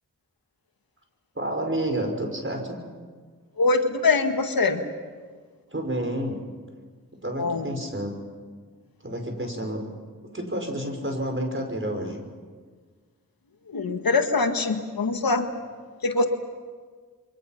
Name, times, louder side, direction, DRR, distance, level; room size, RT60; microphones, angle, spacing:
voice 1, 1.4-2.8 5.7-6.4 7.2-8.2 9.0-9.9 10.3-12.2, right 1 dB, 35° right, 3 dB, 5.5 m, -29 dB
voice 2, 3.6-4.8 7.4-7.7 13.7-15.5 16.0-16.3, left 3 dB, 90° left, 6 dB, 1.7 m, -23 dB
29.0 x 24.0 x 5.9 m, 1.5 s
cardioid pair, 45°, 34 cm